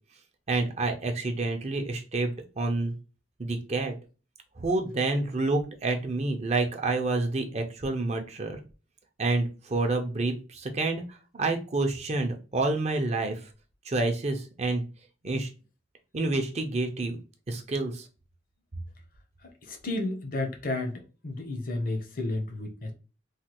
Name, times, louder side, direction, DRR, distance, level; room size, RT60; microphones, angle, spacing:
voice 1, 0.5-2.9 3.4-3.9 4.6-8.6 9.2-13.4 13.9-14.8 15.2-15.5 16.1-17.2 17.5-18.1, right 2 dB, 40° right, 0.5 m, -28 dB
voice 2, 19.7-22.9, left 2 dB, 50° left, 0.7 m, -32 dB
3.2 x 2.2 x 2.9 m
head